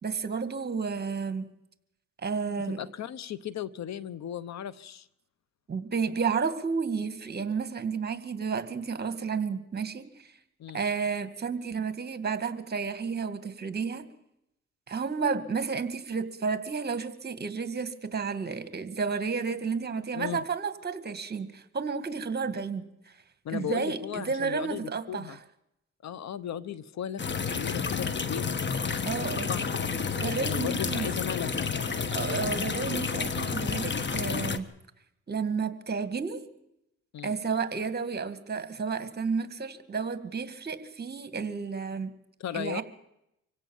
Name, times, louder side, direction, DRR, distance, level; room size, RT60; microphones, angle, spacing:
voice 1, 0.0-1.5 2.2-2.8 5.7-10.3 10.7-14.0 14.9-23.2 23.5-25.4 29.0-29.5 30.1-31.1 32.1-34.7 35.3-36.4 37.2-42.1 42.5-42.8, right 5 dB, 35° right, 11 dB, 2.1 m, -31 dB
voice 2, 2.8-5.1 10.6-10.8 20.1-20.4 23.4-25.4 26.0-28.6 29.5-29.8 30.4-31.7 37.1-37.4 42.4-42.8, left 10 dB, 65° left, 18 dB, 1.0 m, -36 dB
sound 1, 27.2-34.6, left 5 dB, 35° left, 1.5 m, -30 dB
25.5 x 17.0 x 7.3 m, 0.83 s
cardioid pair, 90°, 30 cm